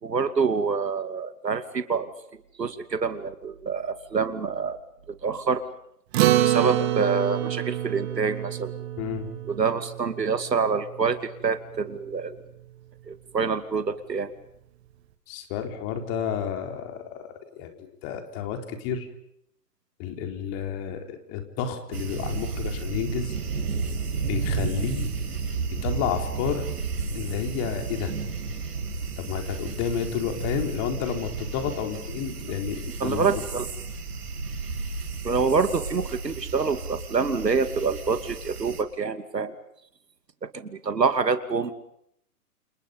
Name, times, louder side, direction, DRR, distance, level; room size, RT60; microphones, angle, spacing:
voice 1, 0.0-2.1 2.6-4.8 5.1-5.6 6.4-8.7 9.5-12.4 13.1-14.3 33.0-33.7 35.2-39.5 40.5-41.8, right 5 dB, 90° right, 9 dB, 2.7 m, -26 dB
Acoustic guitar, 6.1-10.8, right 13 dB, 40° right, 2.4 m, -26 dB
voice 2, 9.0-9.3 15.3-17.3 17.6-19.1 20.0-23.3 24.3-25.1 25.8-26.6 27.1-28.1 29.2-33.3, left 8 dB, 30° left, 4 dB, 4.3 m, -31 dB
sound 1, 21.9-38.8, right 4 dB, 70° right, 7.1 m, -32 dB
29.0 x 29.0 x 5.4 m, 0.73 s
hypercardioid pair, 130°, 48 cm